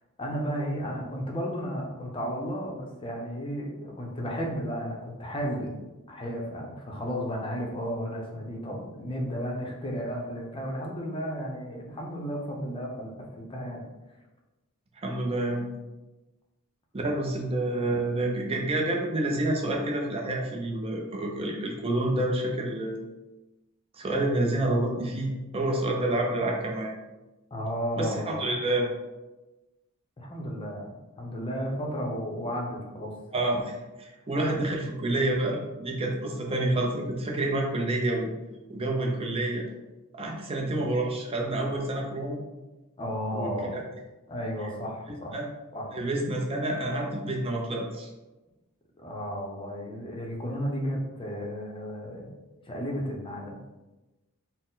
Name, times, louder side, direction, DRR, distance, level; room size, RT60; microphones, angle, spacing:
voice 1, 0.2-13.8 27.5-28.4 30.2-33.1 43.0-43.8 44.3-45.4 45.7-45.9 49.0-52.3 52.7-53.6, equal, 25° left, -1 dB, 0.6 m, -33 dB
voice 2, 15.0-15.7 16.9-23.0 23.9-26.9 28.0-28.9 33.3-38.3 38.7-39.7 40.1-42.4 43.3-43.8 45.3-45.4 45.9-48.1, right 1 dB, 25° right, 0 dB, 0.5 m, -28 dB
4.2 x 2.1 x 3.8 m, 1.1 s
head